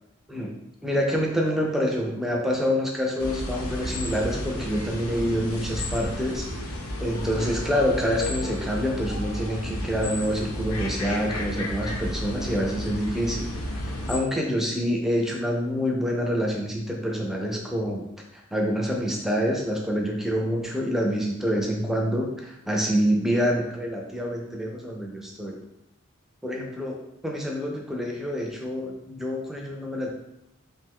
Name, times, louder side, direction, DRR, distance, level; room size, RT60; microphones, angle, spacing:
voice 1, 0.8-6.5 7.0-13.5 14.1-18.1 18.3-25.6 26.4-27.0 27.2-30.1, equal, ahead, 0 dB, 0.4 m, -27 dB
sound 1, 3.2-14.2, left 1 dB, 90° left, 0.6 m, -32 dB
2.9 x 2.2 x 3.5 m, 0.84 s
head